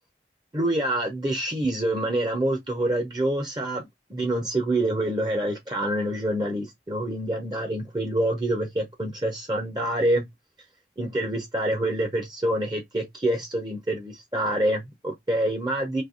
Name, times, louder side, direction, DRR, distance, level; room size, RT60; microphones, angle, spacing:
voice 1, 0.5-10.2 11.0-16.0, right 1 dB, 25° right, 0.9 m, -26 dB
3.3 x 2.8 x 3.9 m
head